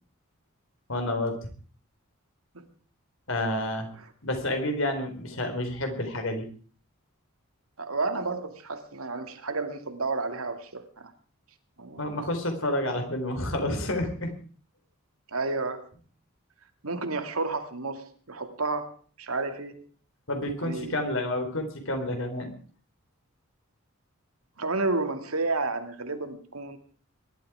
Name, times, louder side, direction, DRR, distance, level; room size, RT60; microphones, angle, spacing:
voice 1, 0.9-1.4 3.3-3.9 4.2-6.4 12.0-14.3 20.3-22.5, left 1 dB, 65° left, 5 dB, 4.1 m, -29 dB
voice 2, 7.8-11.1 11.8-12.3 15.3-15.9 16.8-19.8 20.6-21.0 24.6-26.8, right 3 dB, 80° right, 6 dB, 2.4 m, -31 dB
22.5 x 12.0 x 4.9 m, 0.42 s
head